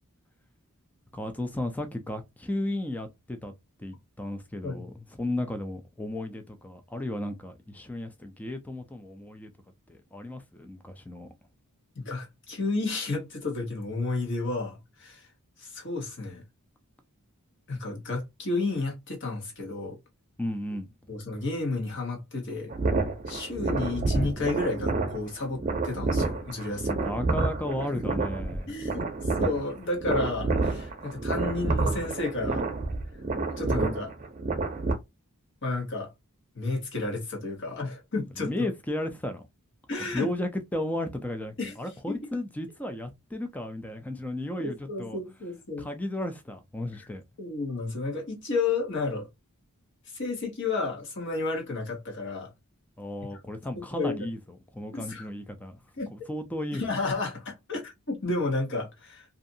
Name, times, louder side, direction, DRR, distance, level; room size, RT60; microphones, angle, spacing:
voice 1, 1.1-3.5 3.8-9.5 9.9-11.3 20.4-20.9 27.0-28.9 38.4-39.4 40.0-45.2 45.8-47.2 53.0-55.8 56.1-56.9, left 1 dB, 5° left, 0.3 m, -34 dB
voice 2, 11.9-15.2 15.6-16.4 17.7-20.0 21.1-22.7 23.3-27.1 28.7-29.1 29.4-32.6 33.6-34.1 35.6-36.1 36.5-38.7 39.9-40.3 41.6-41.8 42.1-42.2 44.6-45.9 47.4-49.3 50.1-52.5 53.8-54.1 54.9-55.2 56.0-56.1 56.7-59.2, left 3 dB, 55° left, 1.2 m, -31 dB
sound 1, 22.7-34.9, right 3 dB, 35° right, 0.6 m, -29 dB
2.6 x 2.4 x 2.6 m
head